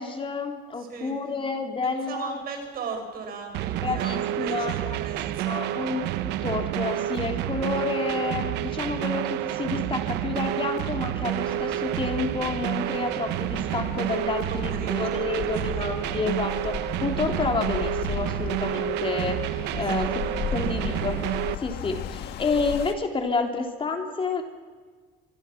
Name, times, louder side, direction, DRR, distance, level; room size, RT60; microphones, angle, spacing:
voice 1, 0.0-2.3 3.8-5.0 5.4-20.2 20.5-21.3 21.6-24.4, left 4 dB, 30° left, 4 dB, 3.3 m, -30 dB
voice 2, 0.8-1.2 1.8-6.0 14.5-16.3 19.7-21.2, right 4 dB, 60° right, 4 dB, 6.1 m, -39 dB
sound 1, 3.5-21.5, right 13 dB, 90° right, 1.0 m, -29 dB
sound 2, 11.2-22.9, left 8 dB, 80° left, 1.5 m, -37 dB
25.5 x 23.0 x 6.1 m, 1.5 s
cardioid pair, 110°, 17 cm